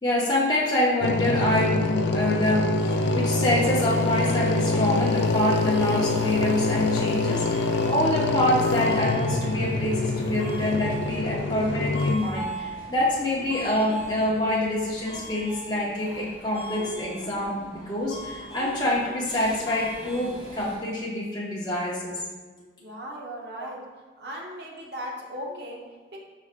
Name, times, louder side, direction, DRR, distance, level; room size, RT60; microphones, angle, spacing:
voice 1, 0.0-2.7 3.1-22.2 23.6-23.7, left 1 dB, 20° left, -6 dB, 0.6 m, -26 dB
sound 1, 1.0-12.1, left 3 dB, 70° left, 0.4 m, -25 dB
Subway metro underground, 2.8-20.8, right 1 dB, 25° right, 1.5 m, -39 dB
voice 2, 22.8-23.9 24.2-26.2, equal, 60° right, -2 dB, 0.8 m, -37 dB
4.8 x 4.1 x 2.4 m, 1.4 s
head